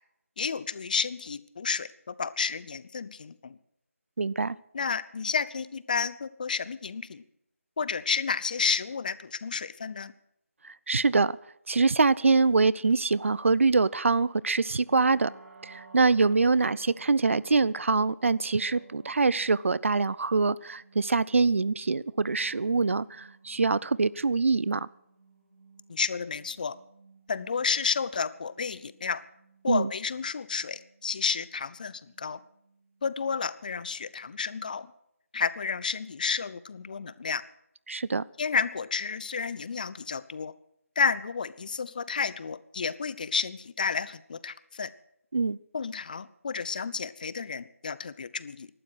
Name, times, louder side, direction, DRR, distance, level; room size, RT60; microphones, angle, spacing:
voice 1, 0.4-3.6 4.7-7.2 7.8-10.1 25.9-26.8 27.3-29.2 29.6-32.4 33.0-34.9 35.3-37.4 38.4-40.5 41.0-44.9 45.7-48.7, left 5 dB, 35° left, 0.6 m, -31 dB
voice 2, 4.2-4.6 10.6-11.4 11.7-15.3 15.6-24.9 29.7-29.9 37.9-38.2 45.3-45.6, right 4 dB, 60° right, 0.5 m, -24 dB
sound 1, 14.9-34.7, right 4 dB, 80° right, 3.6 m, -56 dB
18.5 x 12.0 x 6.2 m
figure-of-eight pair, 165°, 8 cm